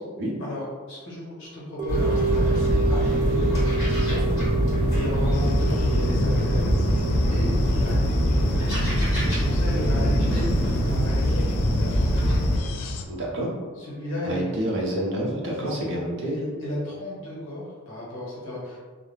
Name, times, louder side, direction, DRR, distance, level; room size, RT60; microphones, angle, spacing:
voice 1, 0.4-4.2 4.6-6.7 7.3-8.2 9.2-12.1 13.7-14.5 15.5-18.8, left 1 dB, 60° left, -6 dB, 1.1 m, -34 dB
sound 1, 1.8-12.1 12.3-12.4, right 4 dB, 20° right, 0.4 m, -31 dB
sound 2, 1.9-12.6, equal, 45° left, 1.1 m, -23 dB
sound 3, 5.3-13.1, left 3 dB, 85° left, 0.3 m, -33 dB
voice 2, 13.1-13.5 14.2-16.3, right 1 dB, 60° right, -3 dB, 0.6 m, -28 dB
2.4 x 2.1 x 3.2 m, 1.5 s
head